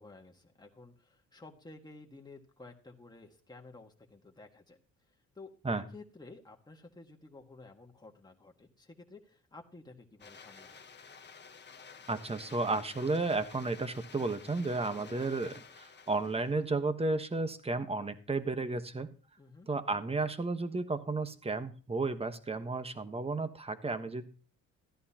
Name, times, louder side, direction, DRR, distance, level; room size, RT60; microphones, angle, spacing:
voice 1, 0.0-4.8 5.4-10.8 19.4-19.7, left 3 dB, 15° left, 1 dB, 1.8 m, -53 dB
sound 1, 10.2-16.7, left 5 dB, 35° left, 1.2 m, -52 dB
voice 2, 12.1-19.1 19.7-24.3, right 3 dB, 20° right, 10 dB, 1.2 m, -33 dB
14.0 x 10.5 x 2.9 m, 0.39 s
cardioid pair, 85°, 32 cm